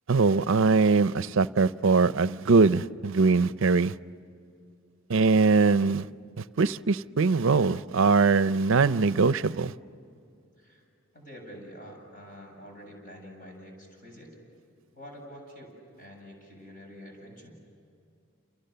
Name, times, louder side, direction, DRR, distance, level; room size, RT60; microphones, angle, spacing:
voice 1, 0.1-3.9 5.1-6.0 6.6-9.7, right 4 dB, 65° right, 15 dB, 0.6 m, -22 dB
voice 2, 11.1-14.4 14.9-17.5, equal, 40° left, 1 dB, 7.8 m, -47 dB
29.5 x 29.0 x 6.8 m, 2.5 s
head